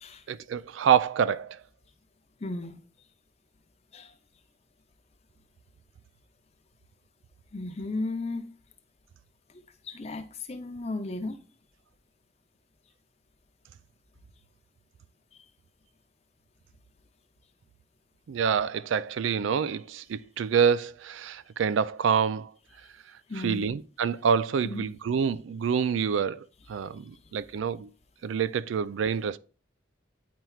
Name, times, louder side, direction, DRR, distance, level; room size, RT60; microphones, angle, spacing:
voice 1, 0.3-1.6 18.3-22.5 23.4-27.9 28.2-29.4, right 7 dB, 85° right, 0.3 m, -27 dB
voice 2, 2.4-2.8 3.9-4.1 7.5-8.5 9.5-11.4 23.3-23.6 24.6-24.9, left 2 dB, 35° left, 0.6 m, -35 dB
9.2 x 4.4 x 2.4 m
head